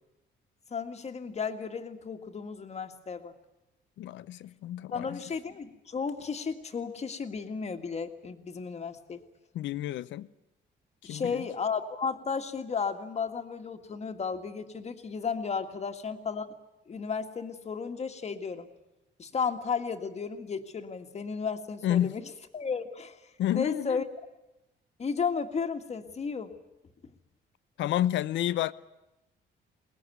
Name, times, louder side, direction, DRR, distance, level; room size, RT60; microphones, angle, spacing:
voice 1, 0.7-3.4 4.9-9.2 11.0-16.5 16.9-18.7 19.2-22.2 22.5-24.0 25.0-26.5, left 5 dB, 35° left, 1.9 m, -34 dB
voice 2, 4.0-5.2 9.5-10.3 11.1-11.4 21.8-22.1 23.4-24.0 27.8-28.7, left 12 dB, 85° left, 0.8 m, -30 dB
23.0 x 20.0 x 9.3 m
cardioid pair, 120°, 19 cm